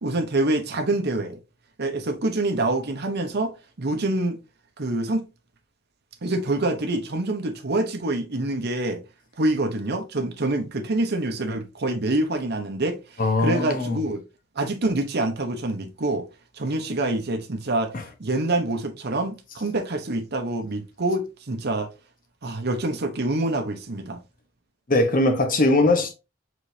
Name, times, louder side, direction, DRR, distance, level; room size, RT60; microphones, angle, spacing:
voice 1, 0.0-1.4 1.8-4.4 4.8-5.2 6.2-9.0 9.4-14.2 14.5-16.3 16.5-17.9 18.2-21.9 22.4-24.2, right 2 dB, 55° right, 0.9 m, -26 dB
voice 2, 13.2-14.0 17.9-18.0 24.9-26.1, left 2 dB, 45° left, 1.0 m, -20 dB
4.9 x 4.0 x 2.7 m
head